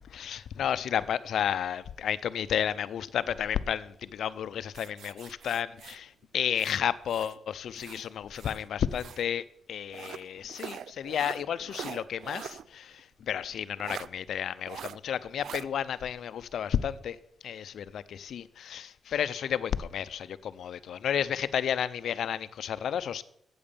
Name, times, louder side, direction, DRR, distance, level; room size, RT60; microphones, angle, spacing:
voice 1, 0.1-17.2 17.4-23.2, left 9 dB, 80° left, 0.5 m, -32 dB
sound 1, 4.7-7.4 7.7-9.3 9.9-12.7 13.0-13.1 13.8-14.1 14.7-15.0 15.4-15.7, right 9 dB, 80° right, 0.3 m, -43 dB
8.8 x 8.0 x 6.8 m
cardioid pair, 110°, 0 cm